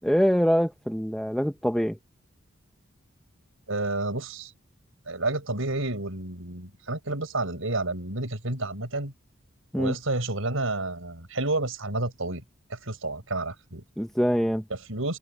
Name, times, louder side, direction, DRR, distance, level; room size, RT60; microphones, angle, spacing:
voice 1, 0.0-2.0 9.7-9.9 14.0-14.6, equal, ahead, 1.1 m, -24 dB
voice 2, 3.7-4.5 5.1-9.1 9.8-12.4 12.7-13.8 14.7-15.2, right 2 dB, 90° right, 6.2 m, -30 dB
head